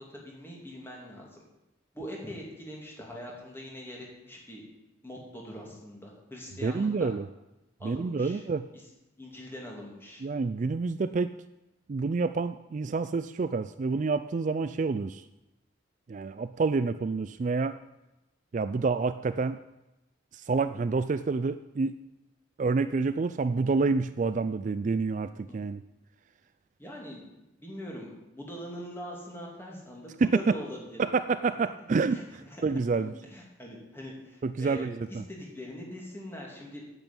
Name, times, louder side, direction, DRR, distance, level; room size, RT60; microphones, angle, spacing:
voice 1, 0.0-1.4 1.9-4.6 5.0-7.2 7.8-8.4 8.7-8.8 9.2-10.2 24.4-24.5 25.5-25.6 26.8-27.3 27.6-31.1 31.6-31.7 32.1-32.6 32.9-36.8, equal, 10° left, -2 dB, 2.9 m, -43 dB
voice 2, 6.6-7.3 7.8-8.7 10.2-11.3 11.9-15.2 16.1-17.8 18.5-19.6 20.3-22.0 22.6-25.8 30.2-30.4 31.0-32.2 32.6-33.1 34.4-35.2, right 4 dB, 40° right, 12 dB, 0.3 m, -28 dB
8.9 x 8.2 x 8.8 m, 0.97 s
head